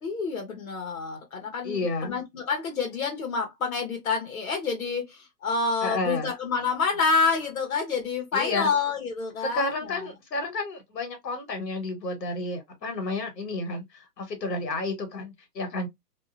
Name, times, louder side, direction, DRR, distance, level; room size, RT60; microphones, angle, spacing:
voice 1, 0.0-10.0, left 4 dB, 60° left, 1.1 m, -28 dB
voice 2, 1.6-2.1 5.8-6.3 8.3-8.7 9.5-15.9, left 2 dB, 90° left, 1.3 m, -31 dB
2.5 x 2.0 x 2.4 m
hypercardioid pair, 175°, 48 cm